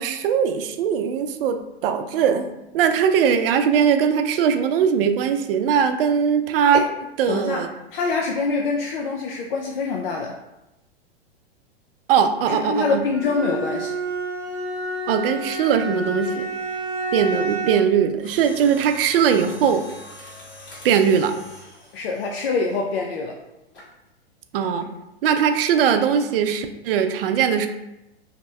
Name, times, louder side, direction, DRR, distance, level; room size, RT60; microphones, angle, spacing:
voice 1, 0.0-2.5 2.7-6.8 7.2-7.7 12.1-13.0 15.1-16.4 17.1-19.8 20.8-21.3 24.5-24.9 25.2-27.7, right 7 dB, 60° right, 8 dB, 0.4 m, -20 dB
voice 2, 7.3-7.6 7.9-10.4 12.5-14.0 21.9-23.4, left 4 dB, 60° left, 0 dB, 0.5 m, -25 dB
Bowed string instrument, 13.1-18.0, right 2 dB, 5° left, 1.1 m, -29 dB
Mechanisms, 18.2-23.1 23.7-24.0 24.6-24.9 25.3-25.4, left 1 dB, 35° left, 1.5 m, -43 dB
2.8 x 2.1 x 3.2 m, 0.93 s
hypercardioid pair, 115°, 32 cm